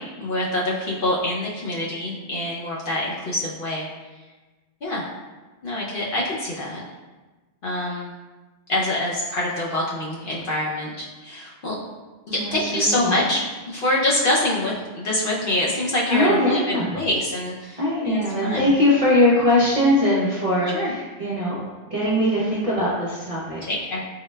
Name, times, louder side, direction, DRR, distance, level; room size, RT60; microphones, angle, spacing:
voice 1, 0.0-3.9 4.8-5.1 5.6-6.8 7.6-8.1 8.7-11.7 12.3-13.4 13.7-17.8 18.0-18.7 20.7-20.9 23.7-24.0, left 1 dB, 60° left, -5 dB, 0.6 m, -25 dB
voice 2, 12.3-13.2 16.1-17.0 17.8-21.6 21.9-23.6, left 1 dB, 40° right, -7 dB, 0.6 m, -21 dB
3.7 x 2.2 x 3.1 m, 1.2 s
omnidirectional pair, 1.2 m